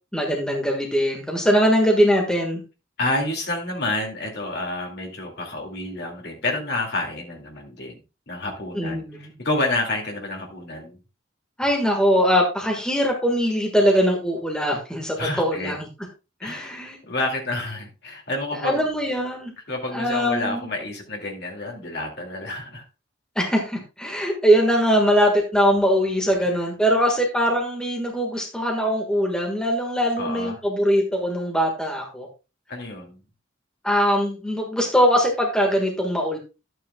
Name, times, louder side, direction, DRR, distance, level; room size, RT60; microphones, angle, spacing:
voice 1, 0.1-2.6 8.7-9.3 11.6-15.9 16.4-17.0 18.6-19.5 19.9-20.7 23.3-32.3 33.8-36.4, equal, 5° left, 0 dB, 1.5 m, -21 dB
voice 2, 3.0-8.0 8.3-11.0 15.2-15.7 16.4-18.8 19.7-22.8 30.2-30.5 32.7-33.2, left 2 dB, 55° left, 1 dB, 2.3 m, -29 dB
11.5 x 9.1 x 2.3 m, 0.30 s
head